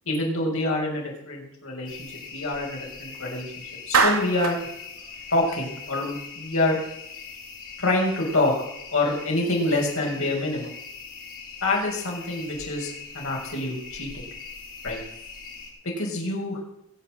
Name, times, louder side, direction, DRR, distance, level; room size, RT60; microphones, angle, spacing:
voice 1, 0.1-3.5 3.9-4.6 5.3-6.8 7.8-8.5 8.9-10.7 11.6-14.2 14.8-15.0 15.8-16.6, left 2 dB, 65° left, -2 dB, 6.2 m, -26 dB
sound 1, 1.9-15.7, left 5 dB, 45° left, 7.9 m, -41 dB
Clapping, 3.9-4.6, right 4 dB, 75° right, 2.6 m, -21 dB
21.5 x 8.3 x 7.9 m, 0.81 s
head